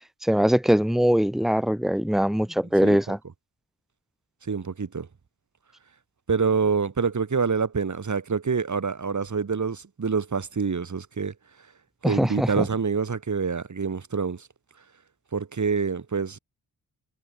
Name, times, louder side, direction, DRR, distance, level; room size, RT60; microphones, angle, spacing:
voice 1, 0.2-3.2 12.0-12.7, equal, ahead, 2.7 m, -22 dB
voice 2, 2.8-3.2 4.4-5.1 6.3-11.3 12.0-14.5 15.3-16.4, right 5 dB, 50° right, 7.2 m, -26 dB
wide cardioid pair, 145°, 38 cm